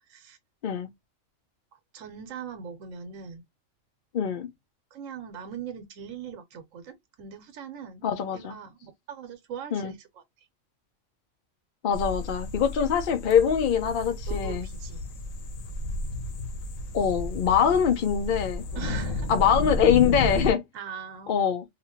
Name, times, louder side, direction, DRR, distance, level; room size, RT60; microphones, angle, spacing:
voice 1, 1.7-3.4 4.9-8.1 8.3-10.5 14.3-15.0 17.6-17.8 18.7-19.3 20.7-21.4, right 7 dB, 85° right, 1.1 m, -41 dB
voice 2, 4.1-4.5 8.0-8.5 9.7-9.9 11.8-14.7 16.9-18.6 19.3-20.6 21.3-21.6, left 8 dB, 55° left, 0.6 m, -23 dB
sound 1, 11.9-20.5, left 2 dB, 90° left, 1.1 m, -32 dB
2.7 x 2.5 x 2.8 m
omnidirectional pair, 1.3 m